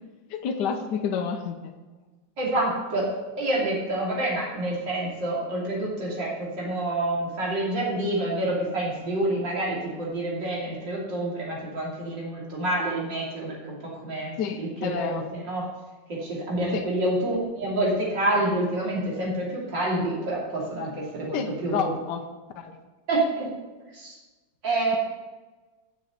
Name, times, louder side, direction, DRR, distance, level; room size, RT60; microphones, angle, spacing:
voice 1, 0.3-1.7 14.4-15.3 16.7-16.9 21.3-22.2 22.6-22.8, left 6 dB, 70° left, 5 dB, 1.4 m, -29 dB
voice 2, 2.4-3.1 3.4-15.7 16.1-21.9 23.1-23.5 23.9-24.2 24.6-25.0, right 1 dB, 85° right, -4 dB, 3.5 m, -28 dB
7.1 x 7.0 x 7.7 m, 1.2 s
omnidirectional pair, 1.9 m